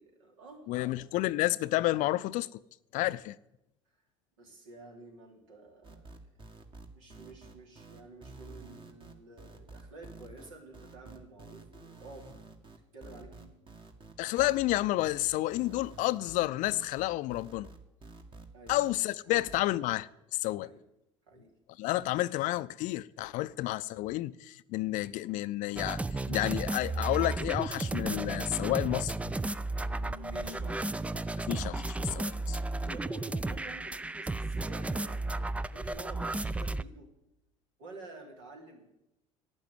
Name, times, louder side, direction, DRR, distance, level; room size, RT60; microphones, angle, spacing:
voice 1, 0.0-0.9 4.4-6.2 6.9-12.3 12.9-13.5 18.5-18.8 20.6-20.8 21.3-21.5 30.1-31.3 32.5-37.1 37.8-38.9, right 2 dB, 70° right, 3.3 m, -50 dB
voice 2, 0.7-2.6 2.9-3.4 14.2-17.7 18.7-20.7 21.8-29.1 31.4-32.6, left 17 dB, 50° left, 0.5 m, -30 dB
sound 1, 5.8-18.9 19.3-19.6, right 3 dB, 30° right, 1.9 m, -50 dB
sound 2, 25.8-36.8, right 2 dB, 10° right, 0.4 m, -34 dB
sound 3, 26.7-28.2 28.6-32.9, left 5 dB, 80° left, 0.9 m, -50 dB
11.5 x 9.0 x 9.2 m
figure-of-eight pair, 65°, 17 cm